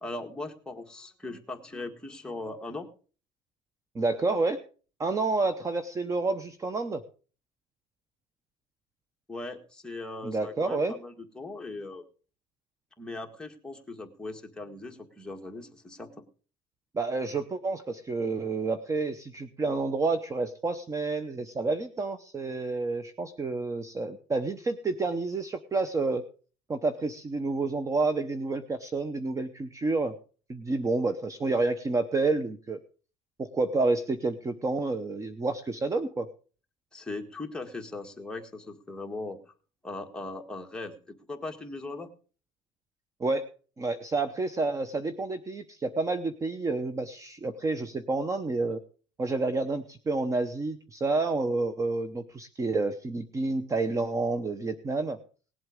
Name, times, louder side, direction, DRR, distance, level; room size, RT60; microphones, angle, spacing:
voice 1, 0.0-2.9 9.3-12.0 13.0-16.1 36.9-39.4 39.8-40.9 41.3-42.1, left 2 dB, 5° left, 2 dB, 1.7 m, -39 dB
voice 2, 3.9-4.6 5.0-7.0 10.2-10.9 16.9-26.2 26.7-30.1 30.5-32.8 33.4-36.3 43.2-43.5 43.8-48.8 49.2-55.2, right 3 dB, 20° right, 11 dB, 0.8 m, -29 dB
18.5 x 7.9 x 5.1 m, 0.39 s
cardioid pair, 130°, 15 cm